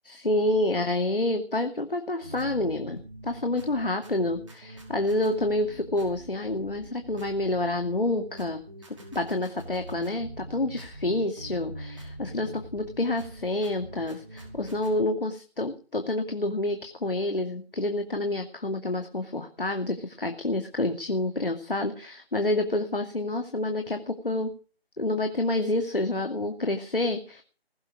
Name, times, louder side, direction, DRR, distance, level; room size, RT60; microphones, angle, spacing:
voice 1, 0.0-3.0 3.2-8.6 9.1-24.5 25.0-27.4, left 2 dB, 60° left, 5 dB, 2.4 m, -28 dB
sound 1, 2.2-15.0, right 1 dB, 30° right, 4.8 m, -43 dB
20.5 x 8.0 x 6.6 m, 0.38 s
figure-of-eight pair, 165°, 31 cm